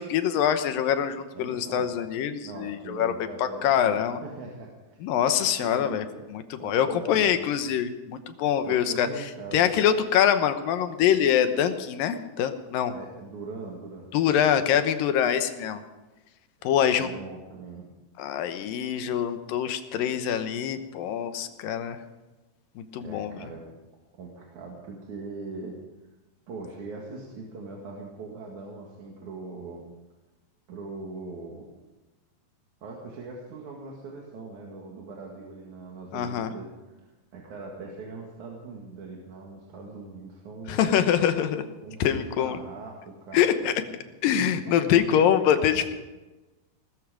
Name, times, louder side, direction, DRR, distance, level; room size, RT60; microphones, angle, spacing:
voice 1, 0.0-3.1 3.4-4.2 5.0-12.9 14.1-15.8 16.6-17.1 18.2-22.0 22.8-23.5 36.1-36.5 40.7-41.6 42.0-42.6 43.3-43.7 44.2-46.0, left 9 dB, 90° left, 9 dB, 2.8 m, -24 dB
voice 2, 1.3-1.9 2.4-5.0 5.6-6.3 6.6-7.6 8.6-9.7 12.9-14.8 16.6-16.7 17.0-17.9 22.9-23.6 24.2-25.8 26.5-29.8 30.7-31.7 32.8-40.9 41.8-42.1 42.4-44.0 44.6-45.9, right 3 dB, 65° right, -1 dB, 3.4 m, -41 dB
19.5 x 13.5 x 5.1 m, 1.1 s
omnidirectional pair, 3.9 m